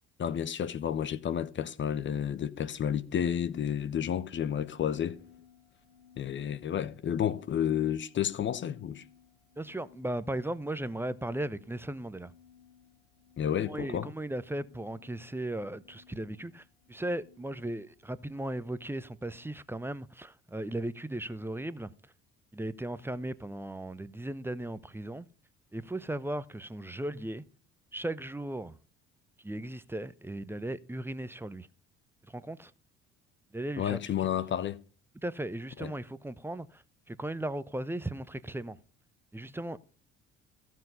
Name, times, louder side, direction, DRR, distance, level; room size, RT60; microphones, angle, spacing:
voice 1, 0.2-5.2 6.2-9.0 13.4-14.1 33.8-34.8 35.8-35.9, left 9 dB, 35° left, 1.0 m, -31 dB
sound 1, 4.6-19.6, left 8 dB, 85° left, 3.1 m, -61 dB
voice 2, 9.6-12.3 13.6-22.1 22.5-25.3 25.7-27.5 27.9-28.8 29.4-31.7 32.3-32.7 33.5-34.3 35.2-38.8 39.3-39.8, right 1 dB, 5° right, 0.8 m, -37 dB
14.5 x 7.5 x 5.5 m
figure-of-eight pair, 55°, 32 cm